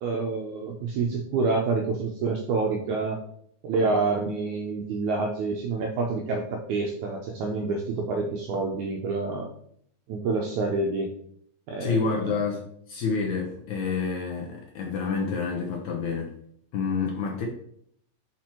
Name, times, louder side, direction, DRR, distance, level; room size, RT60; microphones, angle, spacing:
voice 1, 0.0-3.2 3.6-9.5 10.1-11.1 11.7-12.4, right 3 dB, 85° right, 1 dB, 1.7 m, -27 dB
voice 2, 11.8-16.3 16.7-17.5, left 5 dB, 75° left, 0 dB, 1.8 m, -28 dB
6.0 x 4.4 x 4.4 m, 0.67 s
omnidirectional pair, 4.2 m